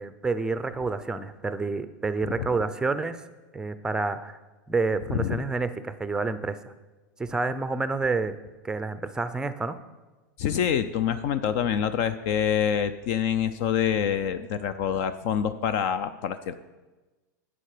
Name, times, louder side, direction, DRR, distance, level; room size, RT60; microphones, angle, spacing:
voice 1, 0.0-3.2 3.5-4.4 4.7-6.6 7.2-8.4 8.6-9.8, right 3 dB, 5° right, 12 dB, 0.5 m, -28 dB
voice 2, 2.2-2.6 5.1-5.4 10.4-16.6, left 8 dB, 50° left, 12 dB, 0.5 m, -26 dB
10.5 x 7.8 x 5.0 m, 1.2 s
hypercardioid pair, 130°, 10 cm